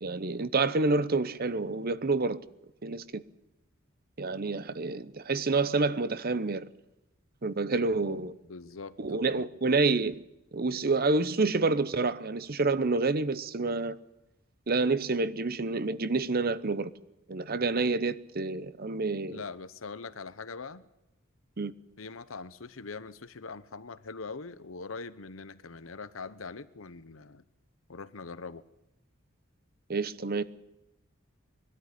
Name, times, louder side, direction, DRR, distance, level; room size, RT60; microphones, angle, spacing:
voice 1, 0.0-2.4 2.8-3.2 4.2-6.7 7.4-8.3 9.0-10.2 10.5-14.0 14.7-16.9 17.3-19.4 21.6-21.7 29.9-30.4, right 3 dB, 50° right, 0.8 m, -28 dB
voice 2, 7.9-9.5 19.3-20.9 22.0-27.4 27.9-28.6, left 4 dB, 80° left, 1.0 m, -42 dB
21.5 x 13.0 x 9.9 m
head